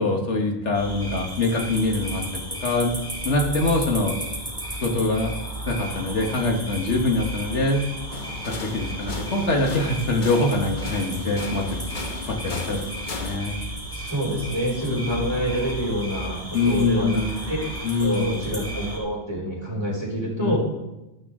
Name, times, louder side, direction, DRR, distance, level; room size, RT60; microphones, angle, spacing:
voice 1, 0.0-3.0 3.2-4.2 4.8-5.3 5.7-7.8 8.5-11.8 12.3-12.8 13.2-13.6 14.9-15.2 16.5-17.4 17.8-18.4 20.4-20.6, left 2 dB, 75° left, 2 dB, 1.6 m, -24 dB
sound 1, 0.7-19.0, right 1 dB, 5° left, 4.1 m, -34 dB
sound 2, 8.1-13.4, left 4 dB, 45° left, 1.1 m, -36 dB
voice 2, 13.9-17.2 17.5-17.6 18.0-20.6, equal, 20° right, -4 dB, 4.0 m, -27 dB
13.0 x 12.0 x 3.7 m, 1.0 s
omnidirectional pair, 1.2 m